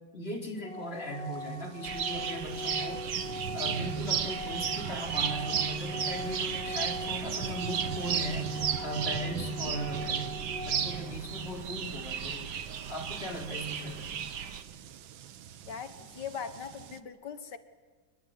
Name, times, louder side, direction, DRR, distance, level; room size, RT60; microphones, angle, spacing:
voice 1, 0.1-3.0 3.5-10.3 10.6-12.5 12.9-14.1, right 1 dB, 30° left, 4.5 m, -38 dB
Organ, 0.6-11.6, left 1 dB, 5° left, 0.8 m, -41 dB
sound 1, 1.0-17.0, right 10 dB, 80° right, 1.8 m, -43 dB
sound 2, 1.8-14.6, right 8 dB, 60° right, 1.8 m, -35 dB
voice 2, 15.6-17.6, left 7 dB, 60° left, 2.0 m, -40 dB
27.0 x 23.0 x 9.7 m
omnidirectional pair, 2.2 m